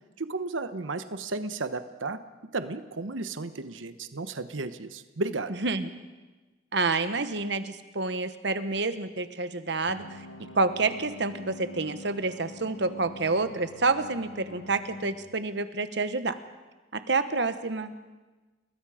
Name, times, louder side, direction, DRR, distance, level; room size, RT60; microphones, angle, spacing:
voice 1, 0.2-2.2 2.5-5.5, right 3 dB, 80° right, 10 dB, 1.0 m, -33 dB
voice 2, 5.6-5.9 6.7-10.0 10.5-16.4 16.9-17.9, right 3 dB, 60° right, 10 dB, 1.2 m, -28 dB
sound 1, 9.9-15.1, left 2 dB, 85° left, 1.4 m, -45 dB
30.0 x 19.5 x 5.0 m, 1.2 s
head